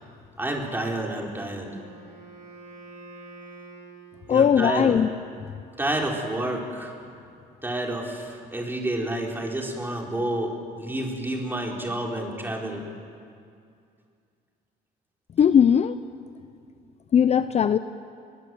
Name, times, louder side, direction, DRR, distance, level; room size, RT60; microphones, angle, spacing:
voice 1, 0.4-1.7 4.3-5.0 5.8-6.9 7.6-12.8, right 1 dB, 10° right, 0 dB, 4.4 m, -29 dB
Wind instrument woodwind instrument, 1.5-4.8, right 2 dB, 50° right, 4.7 m, -46 dB
voice 2, 4.3-5.1 15.4-16.0 17.1-17.8, left 8 dB, 40° left, 12 dB, 0.6 m, -18 dB
23.5 x 22.0 x 7.9 m, 2.3 s
cardioid pair, 110°, 17 cm